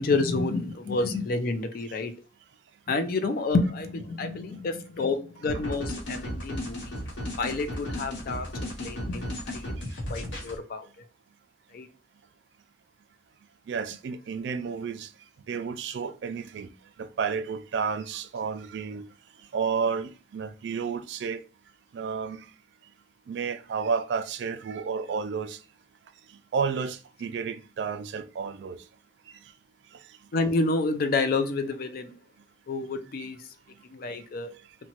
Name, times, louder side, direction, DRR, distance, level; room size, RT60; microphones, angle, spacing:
voice 1, 0.0-2.1 2.9-7.0 7.4-9.6 10.1-10.9 11.7-11.9 30.3-32.1 32.7-33.5 33.8-34.5, left 3 dB, 50° left, 0.4 m, -29 dB
sound 1, 5.5-10.6, left 1 dB, 75° left, 0.7 m, -35 dB
voice 2, 13.7-15.1 15.5-16.7 17.0-19.0 19.5-21.4 21.9-22.5 23.3-25.6 26.3-28.8 29.9-30.1 33.2-33.3, right 5 dB, 65° right, 0.3 m, -31 dB
2.9 x 2.2 x 2.8 m
head